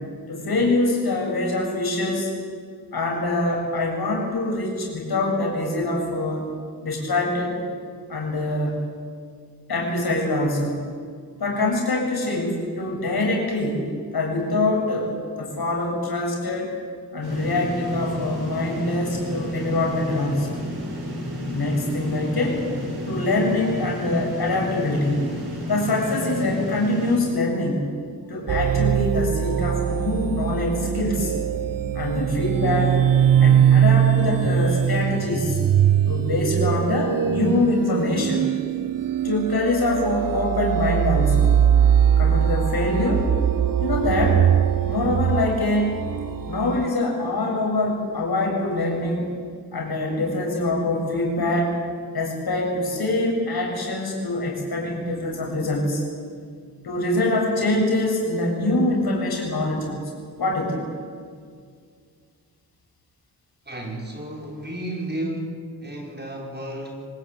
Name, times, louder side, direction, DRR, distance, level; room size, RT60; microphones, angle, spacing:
voice 1, 0.3-2.3 2.9-6.5 6.8-7.6 8.1-8.8 9.7-10.8 11.4-13.9 14.1-15.1 15.4-16.7 17.1-20.6 21.5-22.6 23.1-25.3 25.7-27.9 28.3-31.3 31.9-33.0 33.4-35.6 36.1-38.5 39.2-41.6 42.2-43.3 43.8-44.4 44.9-46.0 46.5-49.3 49.7-51.8 52.1-56.0 56.8-60.1 60.4-60.9, left 2 dB, 70° left, 0 dB, 7.6 m, -24 dB
sound 1, 17.2-27.2, equal, 75° right, 7.4 m, -31 dB
sound 2, 28.5-46.9, right 9 dB, 60° right, 0.8 m, -21 dB
voice 2, 63.7-67.1, right 1 dB, 25° right, 0 dB, 5.6 m, -32 dB
24.0 x 20.0 x 8.7 m, 2.1 s
cardioid pair, 65°, 38 cm